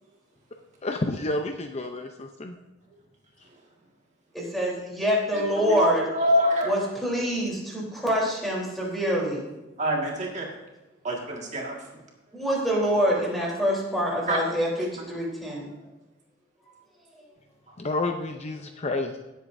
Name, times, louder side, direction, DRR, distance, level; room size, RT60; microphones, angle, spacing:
voice 1, 0.8-2.5 17.8-19.2, left 2 dB, 35° left, 5 dB, 0.6 m, -30 dB
voice 2, 4.3-6.0 6.6-9.4 12.3-15.7, equal, ahead, -4 dB, 3.6 m, -26 dB
voice 3, 5.3-6.7 9.8-10.5 11.0-11.8 14.3-14.4 17.7-17.8, equal, 40° right, -1 dB, 1.8 m, -25 dB
17.0 x 8.0 x 2.7 m, 1.0 s
head